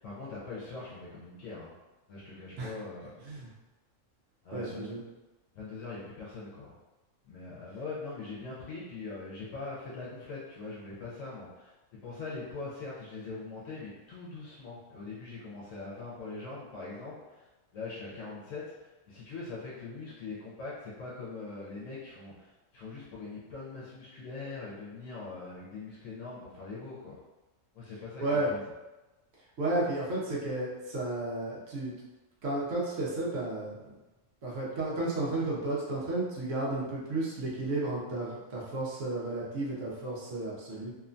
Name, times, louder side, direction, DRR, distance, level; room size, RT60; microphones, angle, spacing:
voice 1, 0.0-1.7 2.1-3.1 4.4-4.9 5.5-6.7 7.2-17.5 17.7-27.2 27.7-28.7, left 3 dB, 75° left, -6 dB, 1.0 m, -42 dB
voice 2, 4.5-5.0 28.2-28.5 29.6-31.9 32.4-33.8 34.4-40.9, right 2 dB, 70° right, -5 dB, 1.1 m, -32 dB
2.9 x 2.2 x 2.5 m, 1.1 s
omnidirectional pair, 1.4 m